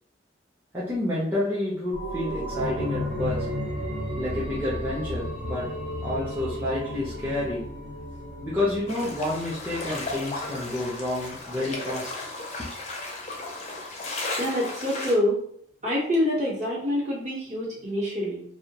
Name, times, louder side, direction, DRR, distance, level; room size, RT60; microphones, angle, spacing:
voice 1, 0.7-3.5 4.2-5.7 6.0-7.6 8.4-12.1, left 1 dB, 10° right, -9 dB, 0.5 m, -29 dB
sound 1, 1.9-11.3 11.6-11.7, equal, 75° right, 1.1 m, -34 dB
sound 2, 8.9-15.1, left 2 dB, 35° left, 0.4 m, -35 dB
voice 2, 14.4-15.4 15.8-18.4, left 1 dB, 40° right, -5 dB, 0.8 m, -26 dB
2.2 x 2.1 x 2.8 m, 0.63 s
head